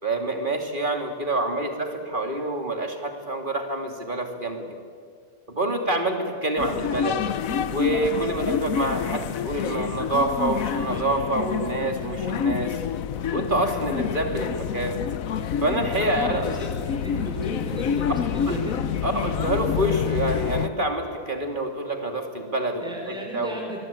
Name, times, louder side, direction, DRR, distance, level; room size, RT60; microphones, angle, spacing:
voice 1, 0.0-4.6 5.5-7.2 7.7-12.8 13.3-14.9 15.6-16.5 18.5-18.6 19.0-23.6, right 1 dB, 35° right, 4 dB, 2.8 m, -27 dB
sound 1, 6.6-20.7, left 8 dB, 70° left, 1.2 m, -28 dB
voice 2, 10.8-11.2 16.0-18.9 19.3-19.4 22.8-23.8, right 1 dB, 5° right, -1 dB, 5.6 m, -36 dB
25.5 x 20.5 x 8.8 m, 2.1 s
omnidirectional pair, 1.5 m